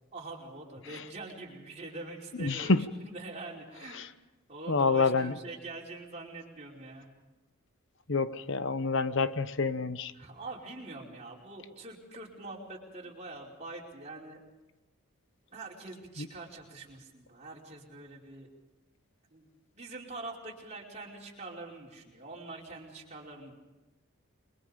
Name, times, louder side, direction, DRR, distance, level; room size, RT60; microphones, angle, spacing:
voice 1, 0.1-4.1 4.5-7.1 10.1-14.4 15.5-18.5 19.3-19.5 19.7-23.5, right 2 dB, 30° right, -3 dB, 5.0 m, -44 dB
voice 2, 2.4-2.8 3.9-4.1 4.7-5.3 8.1-10.1 16.2-16.3, left 4 dB, 55° left, 13 dB, 1.0 m, -27 dB
29.5 x 22.5 x 5.3 m, 1.1 s
head